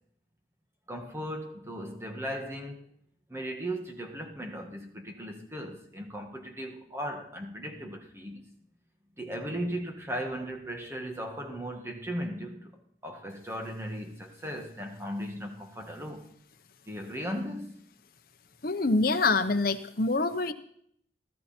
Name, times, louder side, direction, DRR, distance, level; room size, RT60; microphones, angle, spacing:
voice 1, 0.9-2.8 3.3-8.5 9.2-12.7 13.0-16.3 16.9-17.8, equal, 15° right, 1.9 m, -37 dB
voice 2, 18.6-20.5, left 3 dB, 50° left, 0.9 m, -25 dB
17.0 x 13.5 x 4.5 m
head